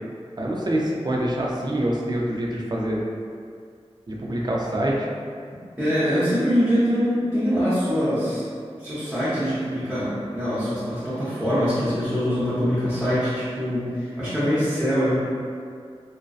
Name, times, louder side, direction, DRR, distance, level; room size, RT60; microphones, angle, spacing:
voice 1, 0.4-3.0 4.1-5.0, right 1 dB, 40° right, -3 dB, 0.4 m, -25 dB
voice 2, 5.8-8.4 8.8-15.2, equal, 5° right, -13 dB, 0.7 m, -23 dB
2.5 x 2.1 x 2.3 m, 2.2 s
wide cardioid pair, 50°, 11 cm